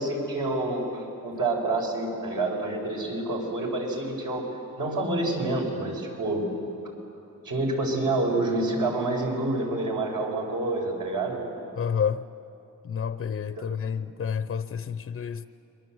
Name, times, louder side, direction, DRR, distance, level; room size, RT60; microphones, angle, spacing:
voice 1, 0.0-4.5 4.8-6.4 7.4-11.4, right 2 dB, 70° right, 5.7 m, -28 dB
voice 2, 11.8-12.3 12.8-15.5, left 7 dB, 40° left, 0.6 m, -29 dB
27.5 x 22.5 x 7.9 m
wide cardioid pair, 115°, 34 cm